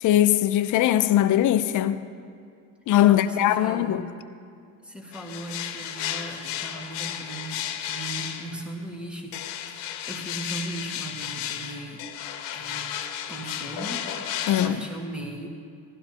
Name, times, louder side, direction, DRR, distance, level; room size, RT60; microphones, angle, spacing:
voice 1, 0.0-2.0 2.9-4.1 14.5-14.8, left 12 dB, 45° left, 0.6 m, -20 dB
voice 2, 3.0-4.2 4.8-9.4 9.7-12.0 12.5-12.9 13.3-14.1 14.5-15.5, right 1 dB, ahead, 1.7 m, -38 dB
sound 1, 5.1-8.7 9.3-14.7, left 10 dB, 80° left, 0.9 m, -33 dB
15.0 x 12.5 x 2.9 m
supercardioid pair, 80°, 43 cm